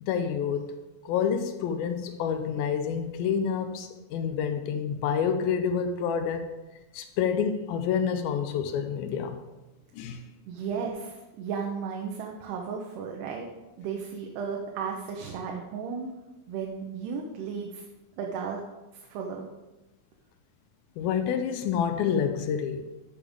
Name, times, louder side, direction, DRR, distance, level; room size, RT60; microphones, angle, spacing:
voice 1, 0.0-0.7 1.1-6.5 6.9-9.4 9.9-10.2 21.0-22.8, left 7 dB, 80° left, 8 dB, 2.3 m, -28 dB
voice 2, 10.5-13.5 13.8-16.1 16.5-17.9 18.2-18.7 18.9-19.5, right 6 dB, 90° right, 1 dB, 3.0 m, -34 dB
12.0 x 6.8 x 3.6 m, 1.1 s
omnidirectional pair, 4.6 m